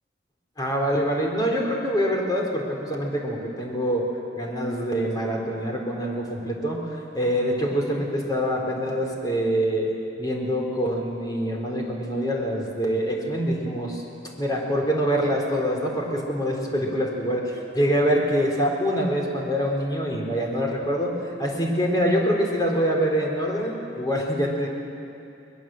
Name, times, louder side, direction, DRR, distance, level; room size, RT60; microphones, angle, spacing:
voice 1, 0.6-4.1 4.3-6.8 7.1-9.9 10.2-14.0 14.4-24.7, equal, 25° left, 0 dB, 3.8 m, -25 dB
22.5 x 21.0 x 7.7 m, 2.7 s
head